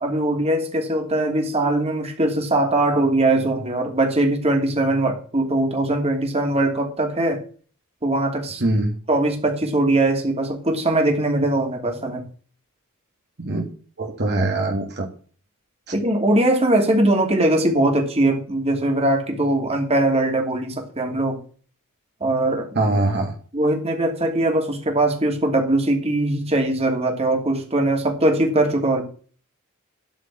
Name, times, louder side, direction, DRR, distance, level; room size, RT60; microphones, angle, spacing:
voice 1, 0.0-7.4 8.0-8.6 9.1-12.2 15.9-21.4 22.2-22.7 23.5-29.0, right 1 dB, 30° right, 2 dB, 2.9 m, -21 dB
voice 2, 8.6-8.9 13.4-13.7 14.0-15.1 22.8-23.3, right 2 dB, 50° right, 1 dB, 1.8 m, -22 dB
13.0 x 5.1 x 7.6 m, 0.43 s
head